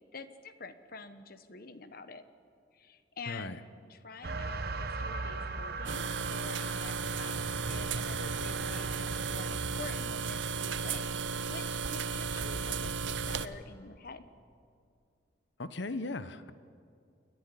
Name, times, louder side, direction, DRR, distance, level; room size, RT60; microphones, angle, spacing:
voice 1, 0.0-2.2 2.7-3.6 3.9-7.4 7.7-11.1 11.5-14.3, left 4 dB, 55° left, 11 dB, 1.1 m, -47 dB
sound 1, 4.2-13.6, right 3 dB, 60° right, 1.0 m, -40 dB
sound 2, 5.8-13.5, right 5 dB, 90° right, 0.7 m, -35 dB
voice 2, 15.6-16.5, left 2 dB, 75° left, 12 dB, 1.0 m, -37 dB
28.5 x 11.0 x 9.9 m, 2.4 s
head